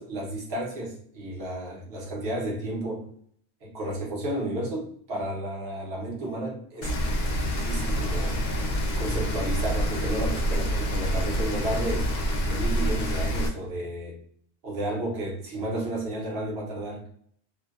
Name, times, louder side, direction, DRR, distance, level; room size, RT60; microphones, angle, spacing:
voice 1, 0.0-3.1 3.6-7.0 7.4-8.4 9.0-12.1 12.4-14.2 14.6-17.1, right 1 dB, 70° right, 1.1 m, -32 dB
Rain, 6.8-13.5, equal, 55° left, 0.5 m, -27 dB
2.6 x 2.1 x 2.3 m
omnidirectional pair, 1.1 m